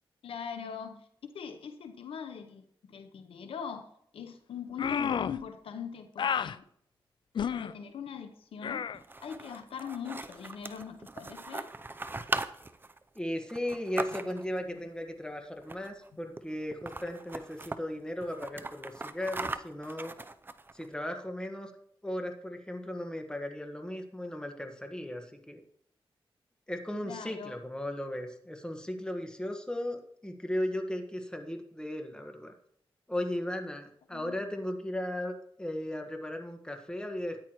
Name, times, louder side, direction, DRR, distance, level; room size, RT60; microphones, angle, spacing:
voice 1, 0.2-1.1 1.3-6.6 7.5-8.8 9.2-11.7 14.0-14.1 14.6-14.7 27.0-27.6 34.1-34.4, left 7 dB, 85° left, 8 dB, 0.9 m, -41 dB
sound 1, 4.8-5.4 6.2-6.5 7.3-7.7 8.6-9.0, left 7 dB, 60° left, 0.4 m, -30 dB
sound 2, 8.9-14.6 15.6-16.1 16.4-16.5 16.7-17.8 18.2-20.9, right 2 dB, 25° right, 0.6 m, -39 dB
voice 2, 13.1-20.2 20.7-21.7 22.0-25.6 26.7-32.5 33.1-37.4, left 1 dB, 10° left, 4 dB, 1.5 m, -36 dB
13.5 x 9.8 x 3.1 m, 0.69 s
cardioid pair, 80°, 9 cm